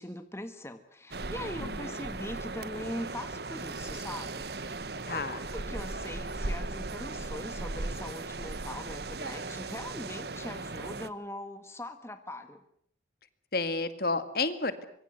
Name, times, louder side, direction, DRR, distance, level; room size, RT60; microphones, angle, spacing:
voice 1, 0.0-4.5 4.9-12.6, left 1 dB, 15° left, 8 dB, 1.6 m, -41 dB
sound 1, 1.1-11.1, right 3 dB, 55° right, 1.2 m, -37 dB
voice 2, 1.6-2.0 5.1-5.4 13.5-14.8, left 3 dB, 50° left, 11 dB, 2.0 m, -31 dB
25.5 x 23.0 x 8.1 m, 0.67 s
head